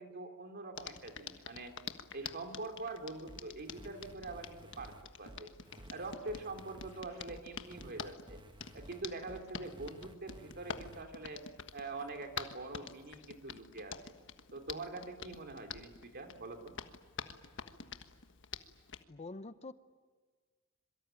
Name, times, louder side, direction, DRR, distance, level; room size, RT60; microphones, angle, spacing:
voice 1, 0.0-1.7 2.1-5.5 5.9-8.4 8.7-11.4 11.7-14.1 14.5-16.8, right 2 dB, 50° right, 5 dB, 3.2 m, -44 dB
Hands, 0.7-19.0, left 6 dB, 60° left, 1.4 m, -48 dB
sound 1, 3.3-11.0, right 1 dB, 20° right, 1.2 m, -54 dB
voice 2, 19.1-19.7, left 3 dB, 30° left, 13 dB, 0.8 m, -45 dB
26.5 x 23.5 x 9.1 m, 1.5 s
head